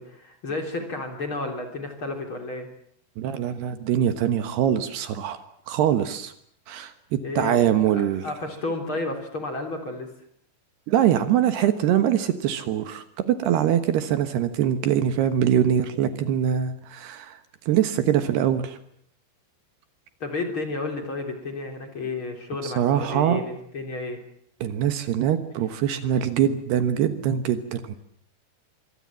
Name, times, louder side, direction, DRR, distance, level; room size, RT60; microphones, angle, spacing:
voice 1, 0.0-2.7 7.2-10.1 20.2-24.2, left 2 dB, 30° left, 5 dB, 3.8 m, -32 dB
voice 2, 3.2-5.4 5.7-6.3 6.7-8.2 10.9-17.4 17.7-18.8 22.6-23.4 24.6-28.0, right 10 dB, 70° right, 10 dB, 3.2 m, -23 dB
25.5 x 24.0 x 7.5 m, 0.67 s
omnidirectional pair, 5.2 m